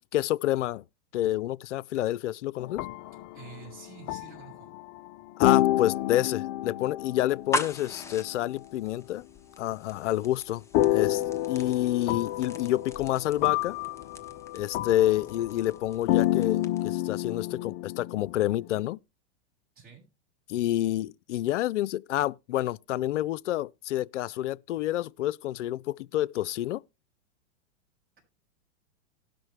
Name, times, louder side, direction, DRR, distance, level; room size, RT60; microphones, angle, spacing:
voice 1, 0.1-0.8 1.1-2.9 5.4-9.2 9.6-10.6 10.9-11.2 11.5-13.8 14.5-19.0 20.5-26.8, left 14 dB, 85° left, 0.5 m, -28 dB
sound 1, 2.6-5.1 5.4-8.6 10.7-18.9, left 15 dB, 35° left, 0.5 m, -29 dB
voice 2, 3.3-4.7 19.7-20.0, right 6 dB, 25° right, 6.3 m, -48 dB
sound 2, 7.3-17.0, left 1 dB, 10° left, 0.9 m, -40 dB
18.5 x 6.1 x 3.2 m
hypercardioid pair, 125°, 35 cm